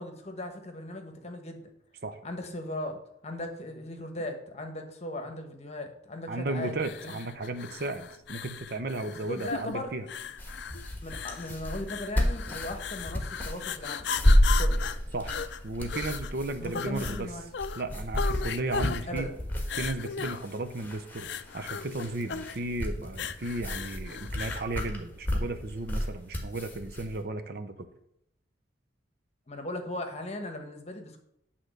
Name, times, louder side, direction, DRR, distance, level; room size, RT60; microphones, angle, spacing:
voice 1, 0.0-1.7 2.2-6.7 7.0-7.5 9.0-9.9 11.0-14.1 14.3-14.8 16.6-17.5 19.1-19.3 29.5-31.2, left 1 dB, 35° left, 5 dB, 1.0 m, -38 dB
voice 2, 6.3-10.1 15.1-15.4 15.6-17.3 17.8-19.3 19.7-27.9, right 2 dB, 50° right, 9 dB, 0.6 m, -34 dB
sound 1, 6.8-24.7, left 7 dB, 60° left, 0.4 m, -37 dB
sound 2, 10.4-27.1, equal, 10° left, 1.4 m, -30 dB
8.7 x 3.8 x 6.5 m, 0.77 s
head